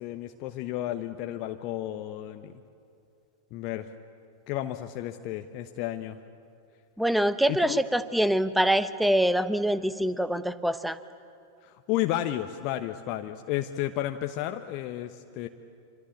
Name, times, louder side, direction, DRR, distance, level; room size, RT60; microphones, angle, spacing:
voice 1, 0.0-2.5 3.5-3.9 4.5-6.2 7.5-7.8 11.6-15.5, left 13 dB, 40° left, 6 dB, 0.9 m, -32 dB
voice 2, 7.0-11.0, right 1 dB, ahead, 14 dB, 1.0 m, -25 dB
26.0 x 25.0 x 8.5 m, 2.5 s
figure-of-eight pair, 90°, 0 cm